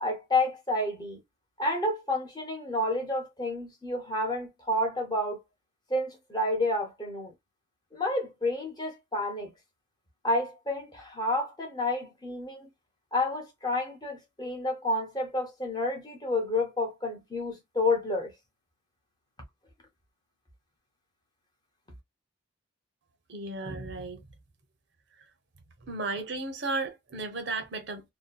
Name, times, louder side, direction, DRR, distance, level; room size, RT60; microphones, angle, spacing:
voice 1, 0.0-1.2 1.6-5.4 5.9-7.3 7.9-9.5 10.2-12.7 13.1-18.3, left 2 dB, 20° left, 0.7 m, -30 dB
voice 2, 23.3-24.2 25.8-28.1, right 3 dB, 55° right, 0.7 m, -34 dB
2.6 x 2.1 x 2.3 m
head